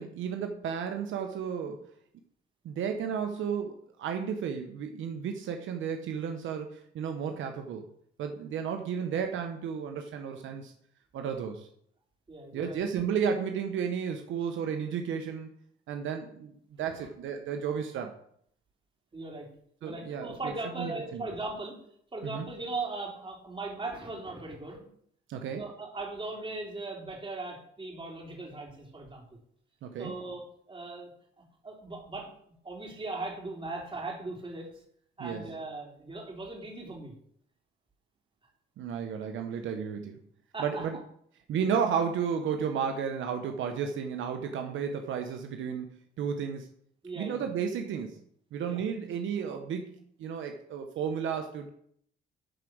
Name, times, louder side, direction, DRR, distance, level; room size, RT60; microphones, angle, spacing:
voice 1, 0.0-1.8 2.6-7.8 8.2-10.7 11.1-11.7 12.5-15.5 15.9-16.5 16.8-18.1 19.8-20.5 20.8-21.2 22.2-22.5 25.3-25.6 29.8-30.1 35.2-35.4 38.8-40.2 40.6-41.0 41.5-46.7 47.2-48.2 48.5-51.7, right 7 dB, 80° right, 5 dB, 1.0 m, -33 dB
voice 2, 12.3-12.8 19.1-19.5 19.8-21.8 22.1-24.8 25.5-29.4 30.0-30.4 30.7-31.1 31.6-32.3 32.6-34.7 35.2-37.1 40.5-40.9 47.0-47.5 48.7-48.8, right 2 dB, 25° right, -1 dB, 3.7 m, -38 dB
11.5 x 4.9 x 6.2 m, 0.65 s
cardioid pair, 90°, 20 cm